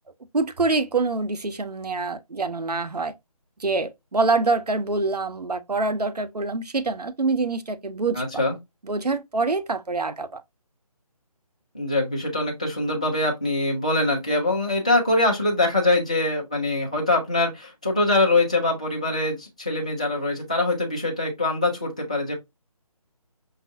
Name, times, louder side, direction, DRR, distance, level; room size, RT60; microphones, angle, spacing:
voice 1, 0.3-3.1 3.6-8.4 8.8-10.4, right 3 dB, 90° right, 0.6 m, -25 dB
voice 2, 8.1-8.6 11.7-22.3, left 2 dB, 10° left, 0.3 m, -23 dB
5.3 x 2.4 x 2.6 m
figure-of-eight pair, 155°, 20 cm